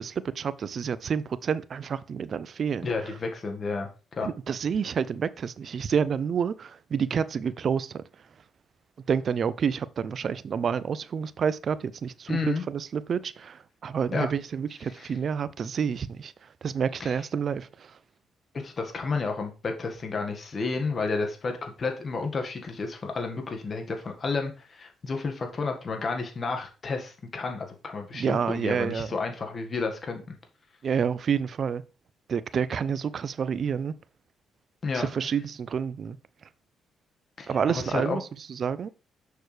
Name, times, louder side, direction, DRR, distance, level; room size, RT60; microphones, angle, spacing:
voice 1, 0.0-2.9 4.2-8.0 9.1-18.0 28.1-29.2 30.8-31.8 32.3-33.9 34.9-36.2 37.5-38.9, right 7 dB, 50° right, 0.4 m, -29 dB
voice 2, 2.8-3.9 4.2-4.3 12.3-12.6 14.1-14.3 15.0-15.1 17.0-17.1 18.6-30.3 34.8-35.1 37.4-38.2, left 4 dB, 40° left, 1.6 m, -31 dB
6.5 x 6.2 x 3.3 m
cardioid pair, 90°, 0 cm